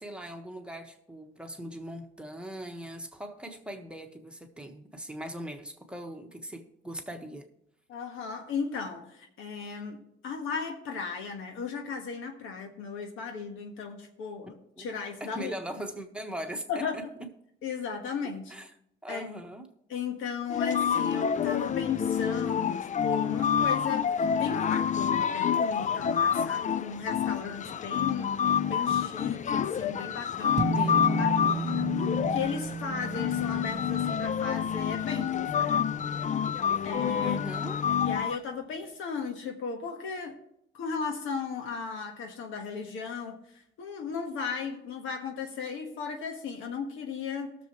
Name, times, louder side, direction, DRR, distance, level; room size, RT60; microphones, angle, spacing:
voice 1, 0.0-7.5 14.8-14.9 15.2-17.0 18.5-18.7 19.0-19.7 30.7-31.7 37.2-37.8, equal, 5° right, 3 dB, 1.4 m, -40 dB
voice 2, 7.9-15.5 16.7-17.0 17.6-18.5 19.1-19.3 19.9-24.1 24.4-28.3 28.7-30.9 31.2-31.9 32.3-35.9 36.8-37.4 38.0-40.4 40.7-47.5, left 5 dB, 85° left, 4 dB, 1.5 m, -36 dB
sound 1, 20.5-38.4, left 8 dB, 40° left, 0.4 m, -28 dB
sound 2, 30.6-37.2, right 5 dB, 40° right, 1.1 m, -36 dB
18.5 x 6.9 x 3.1 m, 0.74 s
cardioid pair, 90°, 20 cm